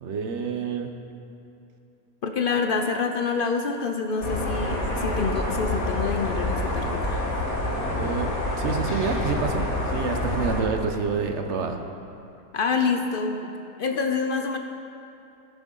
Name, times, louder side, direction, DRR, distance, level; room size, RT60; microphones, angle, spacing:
voice 1, 0.0-0.9 7.8-9.6 9.9-11.8, right 5 dB, 60° right, 5 dB, 1.0 m, -28 dB
voice 2, 2.2-7.2 12.5-13.5 13.8-14.6, left 5 dB, 55° left, 5 dB, 0.6 m, -27 dB
sound 1, 4.2-10.6, left 1 dB, 80° left, 2.3 m, -27 dB
18.5 x 7.2 x 3.9 m, 2.7 s
omnidirectional pair, 1.5 m